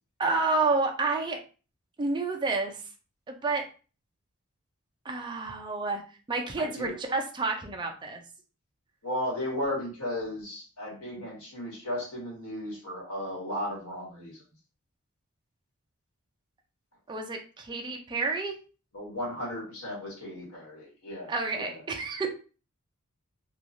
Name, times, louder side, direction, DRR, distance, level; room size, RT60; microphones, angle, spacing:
voice 1, 0.2-1.4 2.0-2.8 3.3-3.6 5.1-6.0 6.3-8.2 17.1-18.5 21.3-22.3, right 3 dB, 20° right, 2 dB, 0.4 m, -29 dB
voice 2, 6.6-7.0 9.0-14.4 18.9-21.8, left 1 dB, 70° left, -3 dB, 1.4 m, -35 dB
3.0 x 2.4 x 2.6 m, 0.35 s
head